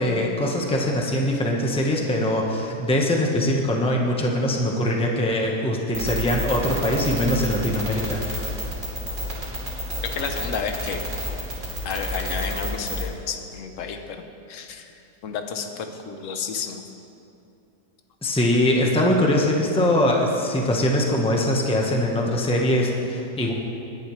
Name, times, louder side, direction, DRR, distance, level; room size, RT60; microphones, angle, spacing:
voice 1, 0.0-8.2 18.2-23.5, left 1 dB, 5° left, -1 dB, 1.0 m, -22 dB
sound 1, 5.9-13.1, equal, 30° right, 2.9 m, -29 dB
voice 2, 10.0-11.0 11.8-14.2 14.5-14.9 15.2-16.8, left 6 dB, 55° left, 5 dB, 1.2 m, -31 dB
20.0 x 10.5 x 3.3 m, 2.7 s
omnidirectional pair, 1.8 m